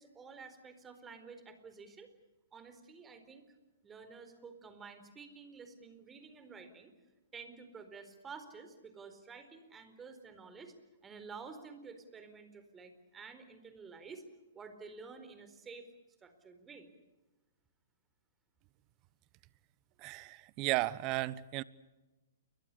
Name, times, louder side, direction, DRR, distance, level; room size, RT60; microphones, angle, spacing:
voice 1, 0.0-2.1 2.5-3.4 3.8-6.9 7.3-10.7 11.0-14.2 14.5-15.9 16.2-16.9, right 5 dB, 15° right, 4.4 m, -51 dB
voice 2, 20.0-21.6, right 19 dB, 35° right, 1.1 m, -34 dB
29.5 x 23.5 x 6.9 m
hypercardioid pair, 120°, 0 cm